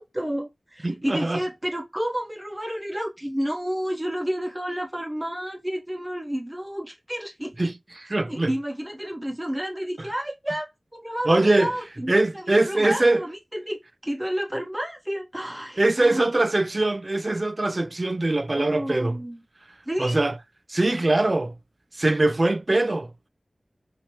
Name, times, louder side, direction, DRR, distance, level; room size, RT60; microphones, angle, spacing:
voice 1, 0.0-7.5 8.3-10.7 11.0-13.8 14.0-16.3 18.6-19.4 19.9-20.2, equal, 20° right, 0.9 m, -30 dB
voice 2, 0.8-1.4 7.6-8.5 11.3-11.7 12.1-13.2 15.8-19.2 20.0-20.3 20.7-21.6 21.9-23.3, right 2 dB, 45° right, 0.3 m, -22 dB
2.9 x 2.8 x 2.9 m
wide cardioid pair, 50°, 0 cm